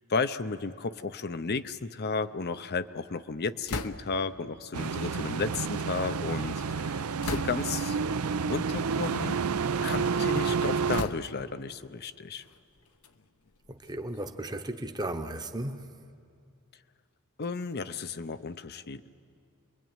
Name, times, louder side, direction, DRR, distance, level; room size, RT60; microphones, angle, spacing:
voice 1, 0.1-8.0 8.4-9.4 9.8-12.4 17.4-19.1, left 4 dB, 45° left, 0.7 m, -33 dB
sound 1, 3.7-4.4 5.3-6.3 7.2-7.9 8.7-8.9 9.4-10.1 10.9-11.6 12.4-14.3, left 3 dB, 75° left, 1.0 m, -39 dB
sound 2, 4.7-11.0, right 5 dB, 75° right, 0.6 m, -29 dB
voice 2, 13.7-15.9, right 1 dB, 20° right, 1.0 m, -35 dB
28.0 x 22.5 x 9.0 m
head